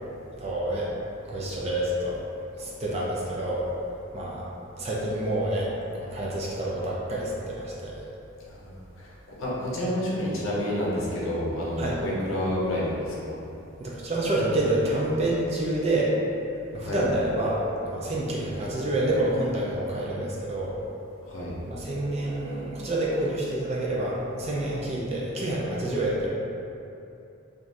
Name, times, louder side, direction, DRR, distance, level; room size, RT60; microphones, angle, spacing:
voice 1, 0.4-1.0 1.2-2.2 2.5-3.7 4.1-4.4 4.8-8.0 11.8-12.0 13.8-16.1 16.7-20.8 21.7-26.3, right 1 dB, 30° right, -5 dB, 0.4 m, -28 dB
voice 2, 8.5-9.1 9.4-13.4 16.8-17.0 21.2-21.5, left 1 dB, 70° left, -6 dB, 0.7 m, -29 dB
3.2 x 2.4 x 2.5 m, 2.8 s
head